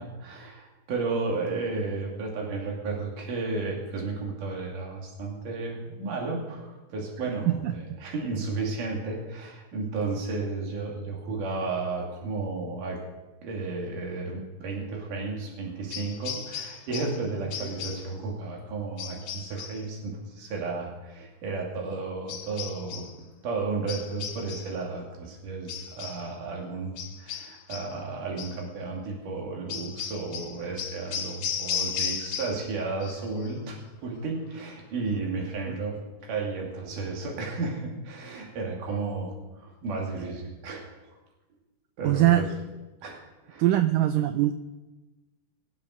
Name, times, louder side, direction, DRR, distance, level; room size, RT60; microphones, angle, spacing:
voice 1, 0.0-13.0 13.4-23.1 23.4-40.9 42.0-42.5 43.0-43.6, right 3 dB, 60° right, -1 dB, 4.0 m, -33 dB
voice 2, 7.5-7.8 35.7-35.8 42.0-42.5 43.6-44.5, right 14 dB, 80° right, 9 dB, 2.0 m, -22 dB
sound 1, 15.9-17.2 17.5-18.1 19.0-19.9 22.3-23.2 23.9-24.8 25.7-26.3 27.0-28.0 28.4-28.6 29.7-32.7 33.0-33.5, left 7 dB, 70° left, 2.6 m, -35 dB
21.0 x 7.4 x 6.6 m, 1.1 s
omnidirectional pair, 4.3 m